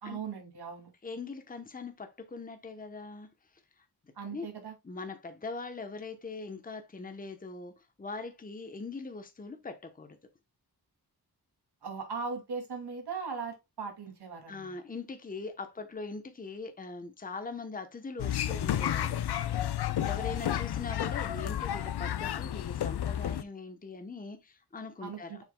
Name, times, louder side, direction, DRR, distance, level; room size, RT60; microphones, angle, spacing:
voice 1, 0.0-0.9 4.2-4.7 11.8-14.7 25.0-25.4, right 5 dB, 80° right, 2.8 m, -39 dB
voice 2, 1.0-3.3 3.8-3.9 4.3-4.5 4.8-10.2 14.5-19.2 20.0-25.4, left 3 dB, 20° left, 0.9 m, -41 dB
sound 1, 18.2-23.4, left 11 dB, 75° left, 0.6 m, -31 dB
7.2 x 5.8 x 2.2 m
wide cardioid pair, 170°, 39 cm